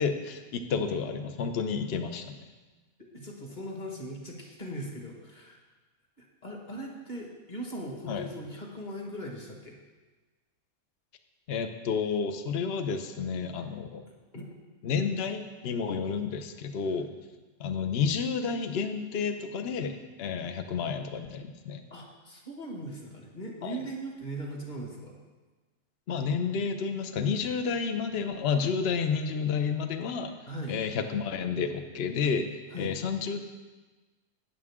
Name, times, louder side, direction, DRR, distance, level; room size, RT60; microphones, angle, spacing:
voice 1, 0.0-2.3 8.1-8.3 11.5-14.0 14.8-17.1 17.6-21.8 23.6-23.8 26.1-30.3 30.7-32.5 32.8-33.4, left 6 dB, 50° left, 7 dB, 0.9 m, -30 dB
voice 2, 3.1-5.6 6.2-9.8 14.3-14.5 21.9-25.2 30.5-30.8 32.7-32.9, right 1 dB, 30° left, 0 dB, 1.8 m, -39 dB
12.5 x 9.3 x 3.7 m, 1.3 s
omnidirectional pair, 1.5 m